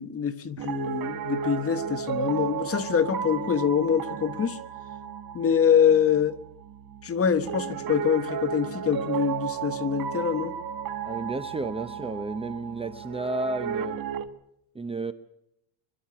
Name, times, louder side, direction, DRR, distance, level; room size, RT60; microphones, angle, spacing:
voice 1, 0.0-4.6 5.3-6.4 7.0-10.5, left 7 dB, 25° left, 1.4 m, -25 dB
Piano, 0.6-14.3, right 7 dB, 45° right, 1.6 m, -34 dB
voice 2, 11.0-14.0 14.7-15.1, right 2 dB, 10° right, 0.8 m, -32 dB
24.0 x 12.5 x 9.9 m
cardioid pair, 140°, 50 cm